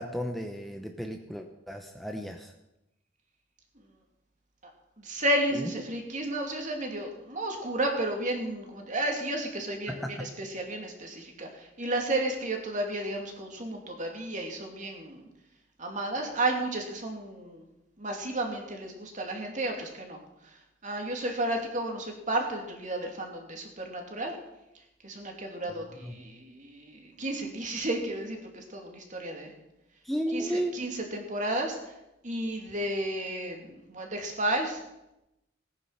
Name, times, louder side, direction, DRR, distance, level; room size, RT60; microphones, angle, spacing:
voice 1, 0.0-2.5 5.5-5.7 9.9-10.3 26.0-26.2 30.0-30.7, equal, ahead, 4 dB, 0.8 m, -34 dB
voice 2, 5.0-15.2 15.8-17.7 18.0-20.2 20.8-24.4 25.0-29.5 30.3-31.9 32.2-34.8, right 1 dB, 40° right, 2 dB, 2.8 m, -32 dB
18.0 x 9.7 x 5.9 m, 0.90 s
head